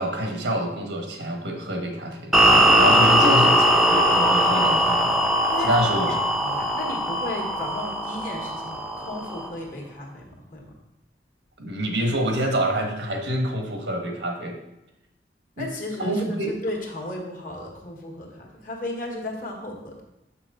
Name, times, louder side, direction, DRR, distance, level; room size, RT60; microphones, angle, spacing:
voice 1, 0.0-2.3 2.8-5.2 5.6-6.2 6.5-6.7 11.6-14.6 15.6-15.7 16.0-16.6, right 1 dB, 85° right, 2 dB, 1.3 m, -27 dB
sound 1, 2.3-9.5, equal, ahead, 0.6 m, -20 dB
voice 2, 6.0-10.7 15.6-20.0, left 1 dB, 50° left, 0 dB, 1.4 m, -35 dB
6.5 x 6.0 x 3.7 m, 0.90 s
head